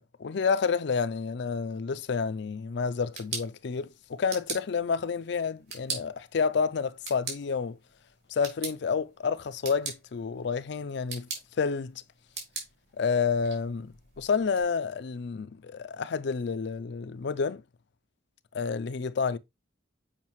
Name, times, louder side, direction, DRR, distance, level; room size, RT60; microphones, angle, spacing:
voice 1, 0.0-7.8 8.3-11.3 11.6-12.0 13.0-17.6 18.5-19.4, left 5 dB, 65° left, 0.4 m, -29 dB
sound 1, 2.9-14.6, right 5 dB, 60° right, 3.2 m, -42 dB
7.3 x 4.9 x 3.1 m
head